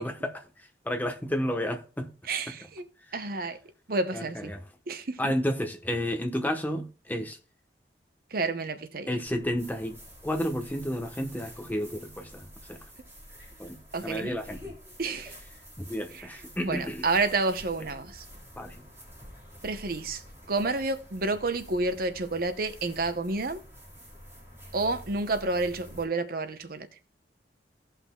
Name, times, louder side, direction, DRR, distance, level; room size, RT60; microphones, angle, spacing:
voice 1, 0.0-2.1 4.1-4.6 5.2-7.4 9.1-10.0 10.2-12.8 13.6-14.7 15.9-17.1 18.6-18.9, equal, 10° left, 1.0 m, -31 dB
voice 2, 2.3-2.8 3.1-3.6 3.9-4.5 4.9-5.3 8.3-9.1 13.9-14.4 15.0-15.3 16.1-16.3 16.6-18.2 19.6-20.2 20.5-23.6 24.7-26.9, right 3 dB, 55° right, 0.8 m, -30 dB
sound 1, 9.2-26.0, equal, 15° right, 3.5 m, -48 dB
17.0 x 5.8 x 2.3 m
head